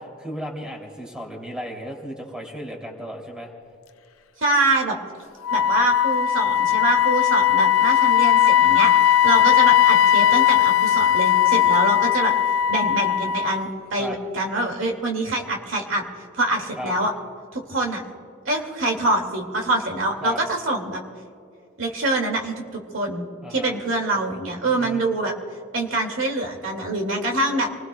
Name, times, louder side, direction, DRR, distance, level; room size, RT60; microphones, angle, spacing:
voice 1, 0.2-3.5 14.0-14.2 16.8-16.9 20.2-20.4 23.4-23.8 24.6-25.0, equal, 5° right, 0 dB, 2.9 m, -35 dB
voice 2, 4.4-5.0 5.5-12.3 12.7-16.0 16.3-17.1 17.5-18.0 18.5-21.0 21.8-22.5 22.9-25.3 25.7-27.7, right 2 dB, 70° right, 2 dB, 2.2 m, -25 dB
Wind instrument woodwind instrument, 5.4-13.7, left 11 dB, 90° left, 0.6 m, -18 dB
27.5 x 20.5 x 2.3 m, 2.4 s
head